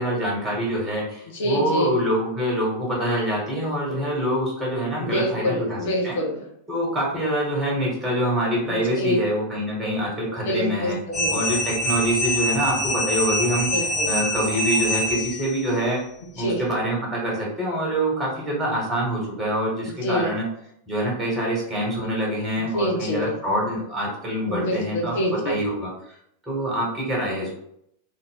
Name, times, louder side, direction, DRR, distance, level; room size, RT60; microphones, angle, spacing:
voice 1, 0.0-6.2 6.7-11.0 11.3-16.0 16.4-20.4 20.9-25.1 25.4-25.9 26.5-27.6, equal, 20° right, -4 dB, 1.2 m, -25 dB
voice 2, 1.3-1.9 5.0-6.4 8.6-9.2 10.3-11.6 13.7-14.1 16.4-16.6 20.0-20.3 22.7-23.3 24.5-25.6, equal, 55° left, -1 dB, 0.6 m, -26 dB
sound 1, 11.1-15.6, equal, 10° left, 0.9 m, -25 dB
2.6 x 2.0 x 3.6 m, 0.73 s
figure-of-eight pair, 90°, 0 cm